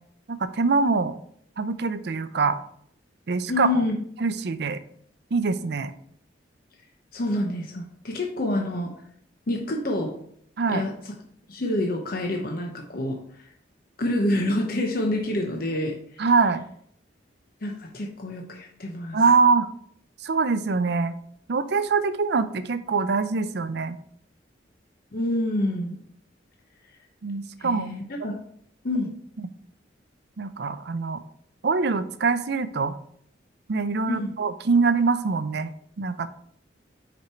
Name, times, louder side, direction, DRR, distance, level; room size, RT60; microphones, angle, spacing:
voice 1, 0.3-1.2 1.6-2.6 3.3-3.8 4.2-4.8 5.3-5.9 10.6-10.8 16.2-16.6 19.1-19.7 20.2-21.1 21.5-24.0 27.2-27.9 30.4-31.2 31.6-33.0 33.7-35.7 36.0-36.3, right 4 dB, 60° right, 12 dB, 0.5 m, -24 dB
voice 2, 3.5-3.9 7.1-8.9 9.5-10.2 10.7-11.0 11.5-13.5 14.0-16.2 17.6-19.2 25.1-26.0 27.6-28.4 28.8-29.1 34.1-34.3, left 1 dB, 50° left, 2 dB, 0.8 m, -27 dB
5.8 x 5.2 x 4.4 m, 0.66 s
head